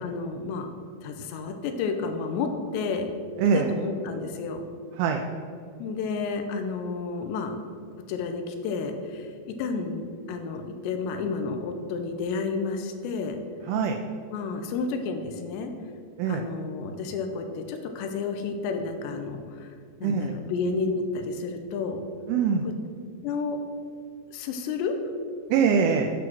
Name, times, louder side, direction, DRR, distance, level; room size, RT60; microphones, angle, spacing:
voice 1, 0.0-0.7 1.0-3.1 3.5-4.6 5.8-7.6 8.1-13.4 14.3-15.7 16.3-19.7 20.0-22.0 22.6-22.7 23.2-23.6 24.3-24.9, left 4 dB, 90° left, 5 dB, 2.9 m, -31 dB
voice 2, 3.4-3.7 5.0-5.2 13.7-14.0 16.2-16.5 20.0-20.4 22.3-22.7 25.5-26.1, right 6 dB, 80° right, 2 dB, 2.3 m, -23 dB
8.6 x 4.7 x 6.0 m, 2.1 s
omnidirectional pair, 4.9 m